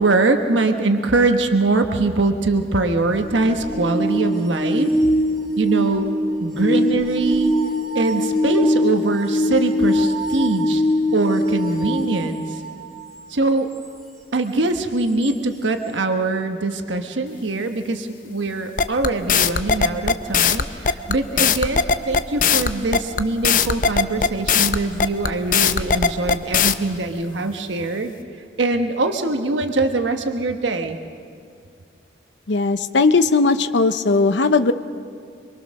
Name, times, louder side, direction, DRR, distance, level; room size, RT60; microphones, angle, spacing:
voice 1, 0.0-5.0 5.6-6.1 6.4-7.5 7.9-10.9 11.1-12.4 13.3-13.7 14.3-28.1 28.6-31.0, right 2 dB, 90° right, 6 dB, 1.2 m, -22 dB
sound 1, 3.1-12.9 15.2-15.3, left 1 dB, ahead, 4.2 m, -22 dB
sound 2, 18.8-26.7, left 6 dB, 45° left, 0.7 m, -18 dB
voice 2, 32.5-34.7, left 3 dB, 75° left, 10 dB, 0.7 m, -17 dB
25.0 x 23.5 x 6.4 m, 2.3 s
head